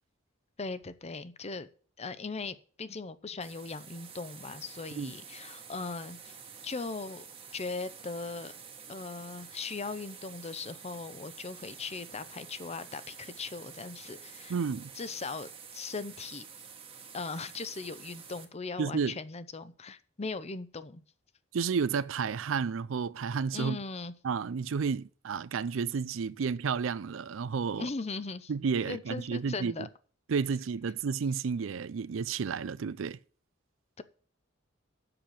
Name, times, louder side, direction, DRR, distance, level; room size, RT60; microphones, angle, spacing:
voice 1, 0.6-1.7 2.0-6.4 6.6-7.3 7.5-8.5 8.9-14.6 14.9-16.4 17.1-21.0 23.5-24.1 27.7-28.5 28.8-29.9 34.0-34.1, left 4 dB, 35° left, 0.7 m, -39 dB
sound 1, 3.4-18.5, right 6 dB, 30° right, 1.3 m, -49 dB
voice 2, 14.5-14.9 18.8-19.2 21.5-23.8 24.2-27.9 28.5-29.7 30.3-33.2, right 5 dB, 80° right, 0.4 m, -31 dB
7.8 x 6.7 x 7.4 m
head